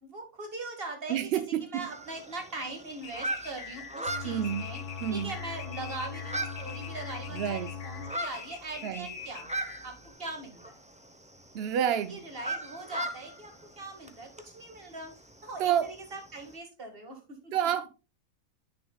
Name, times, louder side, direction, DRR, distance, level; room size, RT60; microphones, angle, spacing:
voice 1, 0.0-4.8 5.1-9.5 9.8-9.9 10.2-10.8 11.7-15.1 15.4-17.5, right 2 dB, 40° right, 2.0 m, -41 dB
voice 2, 1.1-1.9 4.2-4.7 5.0-5.3 7.3-7.8 8.8-9.1 11.5-12.2 15.6-15.9 17.5-17.9, right 9 dB, 65° right, 0.6 m, -29 dB
sound 1, 1.8-16.6, right 1 dB, 10° right, 0.4 m, -41 dB
sound 2, 3.0-10.1, left 6 dB, 55° left, 1.2 m, -45 dB
sound 3, 4.1-8.1, left 6 dB, 85° left, 1.2 m, -40 dB
10.0 x 6.1 x 2.2 m
omnidirectional pair, 1.6 m